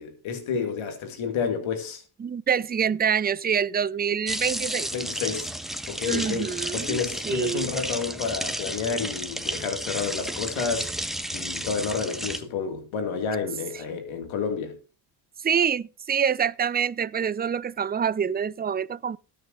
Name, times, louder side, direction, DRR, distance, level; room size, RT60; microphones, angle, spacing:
voice 1, 0.0-2.0 4.9-5.5 5.9-10.9 11.3-14.8, left 5 dB, 70° left, 2.3 m, -30 dB
voice 2, 2.2-4.9 6.1-7.0 7.2-7.7 15.4-19.2, right 7 dB, 20° right, 0.5 m, -26 dB
sound 1, 4.3-12.4, equal, ahead, 1.6 m, -32 dB
19.0 x 6.7 x 2.6 m
hypercardioid pair, 50°, 49 cm